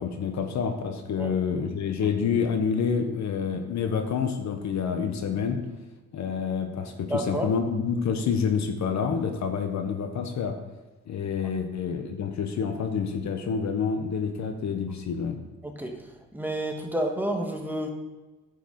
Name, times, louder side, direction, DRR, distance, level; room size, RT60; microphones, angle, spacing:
voice 1, 0.0-5.6 6.1-10.6 11.1-15.4, left 6 dB, 65° left, 6 dB, 1.2 m, -28 dB
voice 2, 7.1-7.5 15.6-16.0 16.3-17.9, right 1 dB, 5° right, 2 dB, 1.6 m, -30 dB
10.0 x 8.3 x 3.9 m, 1.2 s
cardioid pair, 90°, 30 cm